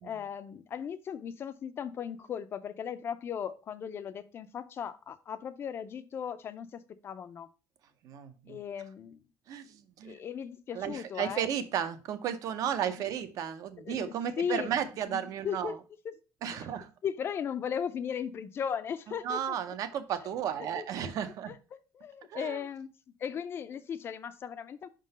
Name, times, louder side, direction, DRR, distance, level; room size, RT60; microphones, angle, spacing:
voice 1, 0.0-7.5 8.5-9.2 10.0-11.5 13.0-13.1 13.8-14.7 15.1-15.8 16.0-16.1 16.5-16.7 17.0-19.6 20.6-20.9 21.5-22.9 23.2-24.9, left 8 dB, 35° left, 0.5 m, -37 dB
voice 2, 8.0-8.6 9.5-10.2 10.7-15.7 16.4-16.9 19.2-21.5 22.3-22.6, right 9 dB, 55° right, 0.7 m, -34 dB
5.6 x 3.8 x 5.2 m
cardioid pair, 175°, 7 cm